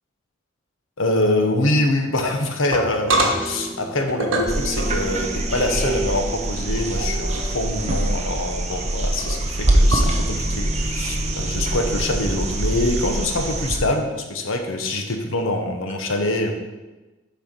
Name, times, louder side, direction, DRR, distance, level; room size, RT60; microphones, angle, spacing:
voice 1, 1.0-16.5, left 1 dB, 85° left, 4 dB, 1.0 m, -24 dB
sound 1, 2.1-10.3, right 2 dB, 75° right, 1.3 m, -28 dB
sound 2, 4.5-13.8 15.9-16.0, right 1 dB, 35° right, 0.7 m, -24 dB
7.5 x 4.6 x 5.3 m, 1.2 s
head